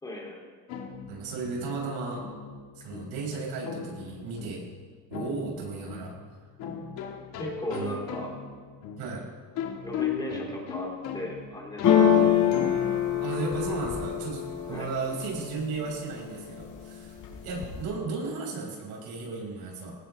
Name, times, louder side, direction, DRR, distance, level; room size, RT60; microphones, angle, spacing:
voice 1, 0.0-0.4 7.4-8.3 9.8-12.1 14.7-14.9, left 1 dB, 10° left, -2 dB, 3.1 m, -36 dB
sound 1, 0.7-14.3, left 7 dB, 90° left, 2.2 m, -38 dB
voice 2, 1.1-2.2 2.8-4.6 5.1-6.1 7.7-8.0 9.0-9.2 12.2-12.3 13.1-14.4 14.7-17.2 17.4-20.0, right 4 dB, 85° right, -2 dB, 6.3 m, -34 dB
sound 2, 11.8-15.7 16.2-16.8 17.1-17.8, left 9 dB, 60° left, 5.1 m, -24 dB
22.0 x 18.5 x 3.5 m, 1.6 s
cardioid pair, 165°, 36 cm